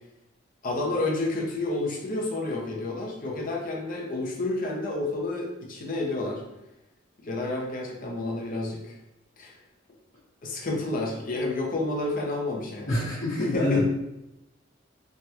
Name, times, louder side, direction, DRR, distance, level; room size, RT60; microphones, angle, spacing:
voice 1, 0.6-6.4 7.2-9.0 9.4-9.5 10.4-12.9 13.5-13.8, left 2 dB, 45° left, -1 dB, 0.6 m, -30 dB
voice 2, 12.9-13.8, left 2 dB, 75° left, -10 dB, 1.1 m, -25 dB
3.3 x 2.2 x 2.8 m, 0.91 s
head